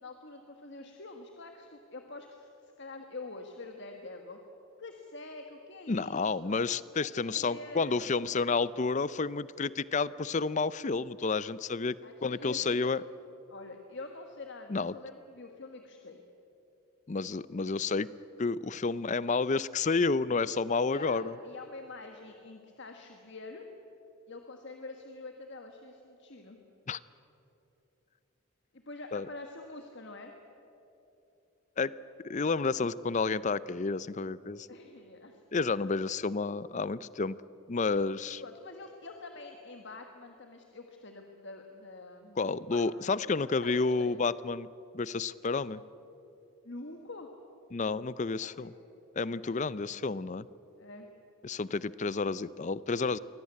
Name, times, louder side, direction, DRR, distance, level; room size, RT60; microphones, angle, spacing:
voice 1, 0.0-4.4 4.8-6.6 7.2-8.1 12.0-12.9 13.5-16.2 20.8-23.7 24.3-26.6 28.7-30.3 34.7-35.4 38.4-44.2 46.6-47.3 48.4-48.7 49.3-49.8 50.8-51.1, left 3 dB, 55° left, 4 dB, 1.5 m, -46 dB
voice 2, 5.9-12.0 12.2-13.0 14.7-14.9 17.1-18.1 18.4-21.4 26.9-27.0 29.1-29.3 31.8-31.9 32.2-34.7 35.5-37.4 37.7-38.4 42.4-44.7 44.9-45.8 47.7-48.7 49.2-50.5 51.4-53.2, left 4 dB, 35° left, 18 dB, 0.5 m, -30 dB
23.5 x 17.5 x 9.7 m, 2.9 s
head